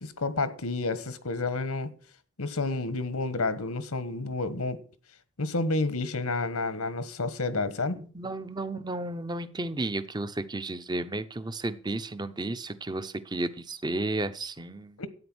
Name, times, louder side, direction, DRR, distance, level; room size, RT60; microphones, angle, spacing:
voice 1, 0.0-1.9 2.4-4.8 5.4-8.0 15.0-15.1, left 3 dB, 80° left, 1.3 m, -30 dB
voice 2, 8.1-14.9, right 2 dB, 20° right, 0.7 m, -33 dB
12.5 x 9.0 x 6.2 m
head